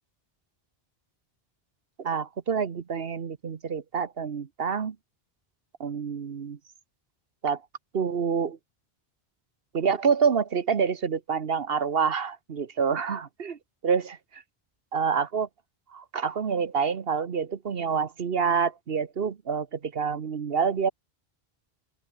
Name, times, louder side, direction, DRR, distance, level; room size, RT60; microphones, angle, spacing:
voice 1, 2.0-5.0 5.8-6.6 7.4-7.6 7.9-8.6 9.7-14.2 14.9-15.5 15.9-20.9, right 6 dB, 70° right, 1.3 m, -27 dB
open air
omnidirectional pair, 1.0 m